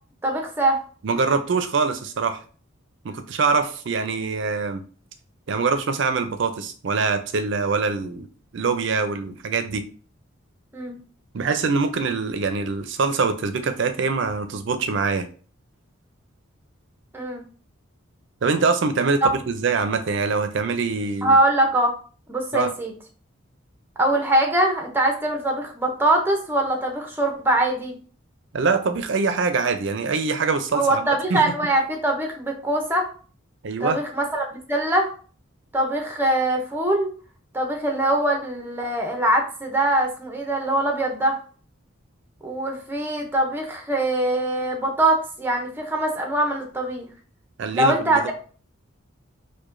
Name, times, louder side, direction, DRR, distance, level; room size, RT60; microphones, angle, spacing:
voice 1, 0.2-0.8 10.7-11.0 17.1-17.4 19.2-19.3 21.2-21.9 22.3-22.9 24.0-28.0 30.7-33.1 33.8-35.1 35.7-37.1 37.5-41.4 42.4-47.1 47.7-48.3, right 1 dB, 10° right, 2 dB, 0.5 m, -22 dB
voice 2, 1.0-2.4 3.0-4.8 5.5-8.3 8.5-9.9 11.3-15.3 18.4-21.4 22.5-22.7 28.5-31.4 33.6-34.0 47.6-48.3, right 4 dB, 60° right, 8 dB, 0.4 m, -24 dB
4.7 x 2.2 x 2.5 m, 0.41 s
head